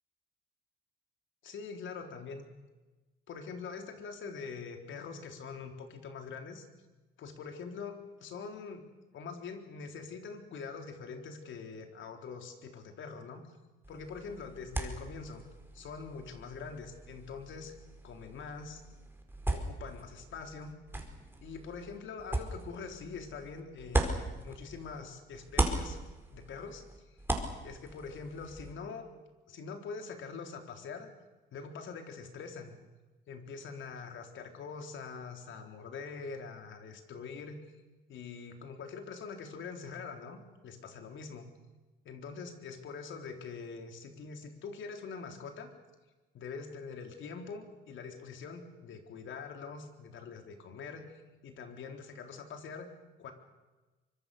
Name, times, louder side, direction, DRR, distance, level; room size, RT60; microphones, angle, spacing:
voice 1, 1.4-2.5 3.3-6.7 7.2-8.8 9.1-13.5 13.9-15.4 15.7-17.7 18.0-18.8 19.5-20.7 21.4-26.0 26.3-26.8 27.6-29.1 29.5-31.1 31.5-32.7 33.3-37.6 38.1-40.4 40.6-41.5 42.0-45.7 46.3-51.1 51.4-52.9 53.2-53.3, left 5 dB, 75° left, 5 dB, 3.9 m, -44 dB
sound 1, 13.8-25.0 25.3-28.7, right 1 dB, 10° right, 4.7 m, -38 dB
24.5 x 23.5 x 6.9 m, 1.2 s
cardioid pair, 90°, 20 cm